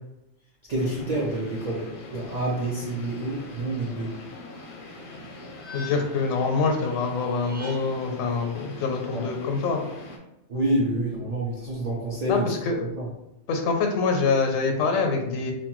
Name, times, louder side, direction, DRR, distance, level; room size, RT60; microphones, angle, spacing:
voice 1, 0.7-4.1 9.1-9.2 10.5-12.5 12.8-13.1, right 1 dB, 70° right, -4 dB, 0.4 m, -28 dB
sound 1, 0.8-10.2, left 2 dB, 60° left, 0.5 m, -42 dB
sound 2, 5.1-6.3 7.3-8.1, left 3 dB, 50° right, 0.8 m, -43 dB
voice 2, 5.7-9.8 12.3-12.9 13.5-15.5, left 4 dB, 85° left, 3 dB, 1.0 m, -25 dB
2.9 x 2.1 x 2.9 m, 0.90 s
omnidirectional pair, 1.3 m